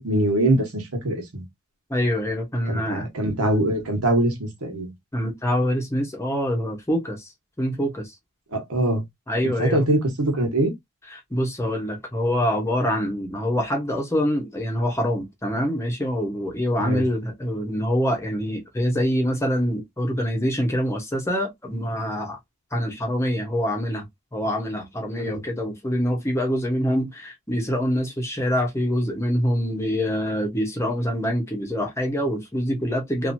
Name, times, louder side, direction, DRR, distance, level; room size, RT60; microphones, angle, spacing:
voice 1, 0.0-1.4 2.7-4.9 8.5-9.0 9.6-10.7 16.8-17.0 25.2-25.3, right 1 dB, 80° right, 1.3 m, -23 dB
voice 2, 1.9-3.1 5.1-7.3 7.6-8.1 9.3-9.9 11.1-22.4 22.7-24.1 24.3-33.3, equal, 15° left, 0.8 m, -25 dB
2.9 x 2.6 x 2.6 m
head